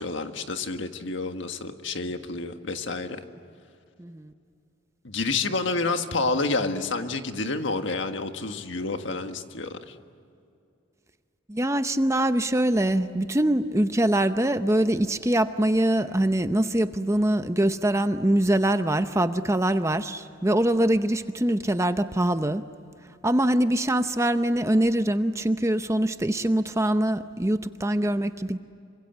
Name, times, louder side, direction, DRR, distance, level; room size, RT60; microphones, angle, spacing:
voice 1, 0.0-3.2 5.0-9.9, left 3 dB, 65° left, 7 dB, 1.6 m, -29 dB
voice 2, 4.0-4.3 11.5-22.6 23.2-28.6, right 1 dB, 15° right, 10 dB, 0.7 m, -23 dB
27.5 x 25.0 x 8.1 m, 2.5 s
head